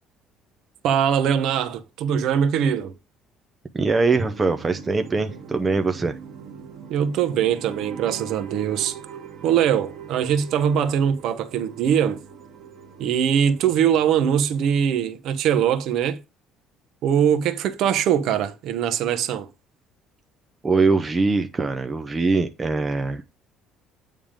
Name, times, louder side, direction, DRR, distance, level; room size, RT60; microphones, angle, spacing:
voice 1, 0.8-2.9 6.9-9.0 9.4-12.2 13.0-16.2 17.0-19.5, right 8 dB, 55° right, 0.9 m, -22 dB
voice 2, 3.7-6.2 20.6-23.2, right 3 dB, 15° right, 0.6 m, -22 dB
sound 1, 4.1-15.0, right 7 dB, 35° right, 1.8 m, -41 dB
8.9 x 3.6 x 5.0 m
cardioid pair, 170°, 0 cm